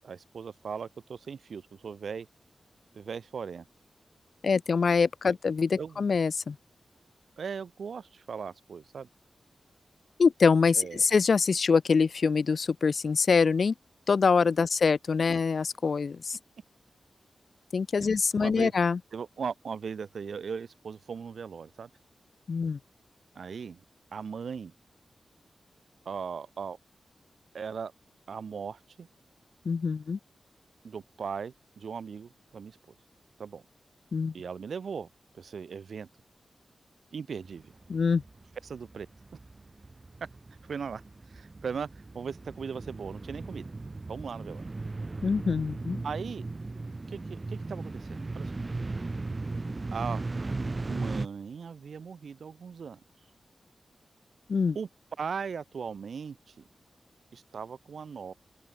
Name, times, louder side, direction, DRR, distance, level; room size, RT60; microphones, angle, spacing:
voice 1, 0.0-2.3 2.9-3.7 5.3-5.4 5.8-6.1 7.4-9.1 10.7-11.0 18.0-18.7 19.1-21.9 23.4-23.8 24.1-24.7 26.1-26.8 27.5-27.9 28.3-29.1 30.8-32.8 33.4-33.6 34.3-35.1 35.3-36.1 37.1-37.7 38.6-39.1 40.7-41.0 41.3-41.9 42.1-43.7 44.1-44.7 46.0-46.5 47.1-48.5 49.9-50.2 50.9-53.0 54.8-54.9 55.2-56.6 57.3-58.3, right 6 dB, 75° right, 7.0 m, -38 dB
voice 2, 4.4-6.6 10.2-13.7 14.1-16.4 17.7-19.0 22.5-22.8 29.7-30.2 34.1-34.3 37.9-38.2 45.2-46.0 54.5-54.7, left 5 dB, 55° left, 0.4 m, -25 dB
sound 1, 37.4-51.3, right 3 dB, 30° right, 7.5 m, -37 dB
open air
wide cardioid pair, 175°, 0 cm